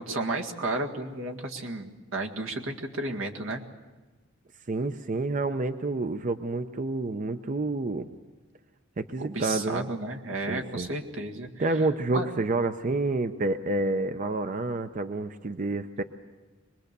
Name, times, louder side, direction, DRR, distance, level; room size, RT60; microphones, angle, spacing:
voice 1, 0.0-3.6 9.2-11.8 12.1-12.3, right 2 dB, 85° right, 2 dB, 1.8 m, -33 dB
voice 2, 4.7-8.1 9.0-9.9 10.5-10.9 11.6-16.0, right 2 dB, 40° right, 9 dB, 0.6 m, -29 dB
24.0 x 20.5 x 6.7 m, 1.3 s
head